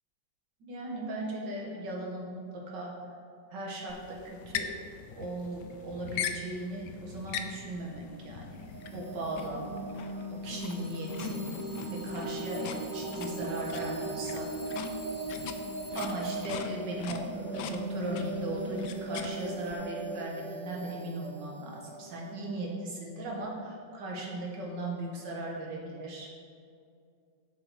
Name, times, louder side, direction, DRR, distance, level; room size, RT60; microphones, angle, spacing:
voice 1, 0.7-2.9 3.5-4.7 5.1-8.6 8.9-14.5 16.0-26.3, right 2 dB, 70° right, -2 dB, 2.0 m, -38 dB
sound 1, 3.9-19.7, left 6 dB, 75° left, 1.1 m, -41 dB
Alarm / Clock, 5.4-5.5 6.1-6.5 7.1-7.5 8.4-8.5 10.4-16.8, left 2 dB, 30° left, 0.9 m, -50 dB
sound 2, 8.5-23.2, right 2 dB, 90° right, 1.6 m, -39 dB
6.7 x 6.7 x 4.6 m, 2.4 s
omnidirectional pair, 2.1 m